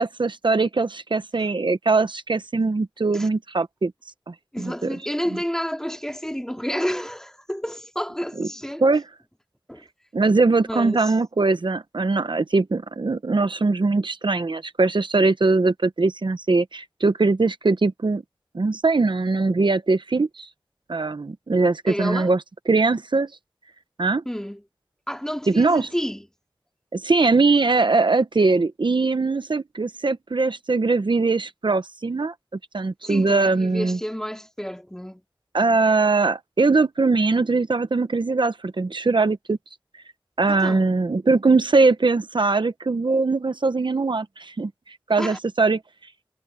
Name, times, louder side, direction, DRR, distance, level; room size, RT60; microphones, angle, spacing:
voice 1, 0.0-3.9 4.3-4.7 8.4-8.5 8.8-9.0 10.1-18.2 18.5-20.5 20.9-22.4 22.7-23.3 24.0-24.2 25.5-25.9 26.9-32.3 32.7-34.0 35.5-39.6 40.4-44.7 45.1-45.8, right 3 dB, 70° right, 0.9 m, -21 dB
voice 2, 4.5-8.9 9.7-9.8 10.7-11.1 21.9-22.3 24.3-24.6 25.1-26.3 33.0-35.2 40.5-40.9 45.2-45.4, equal, 5° left, 2.2 m, -30 dB
wide cardioid pair, 55°, 8 cm